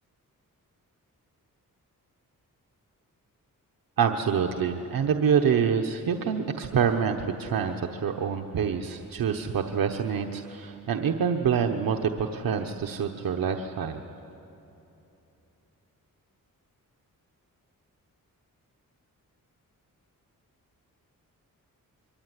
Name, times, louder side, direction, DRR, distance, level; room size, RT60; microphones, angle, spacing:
voice 1, 4.0-14.0, right 7 dB, 85° right, 4 dB, 1.1 m, -26 dB
25.0 x 24.0 x 9.8 m, 2.9 s
wide cardioid pair, 160°, 34 cm